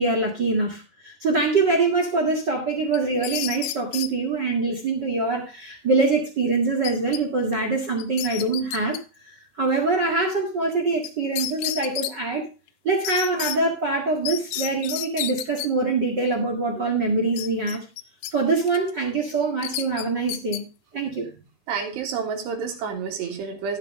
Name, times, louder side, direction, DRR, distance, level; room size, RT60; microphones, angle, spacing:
voice 1, 0.0-9.0 9.2-12.5 12.8-17.8 18.3-20.7 20.9-21.4, right 3 dB, 45° right, 2 dB, 1.3 m, -24 dB
sound 1, 2.9-4.1 6.8-7.2 7.5-7.6 8.0-9.0 11.0-11.1 11.4-12.1 13.0-13.6 14.2-15.7 17.4-18.3 18.7-18.9 19.6-20.6, left 14 dB, 80° left, 2.3 m, -31 dB
voice 2, 21.7-23.8, right 6 dB, 80° right, 2 dB, 4.0 m, -29 dB
12.5 x 7.9 x 3.6 m, 0.31 s
omnidirectional pair, 4.9 m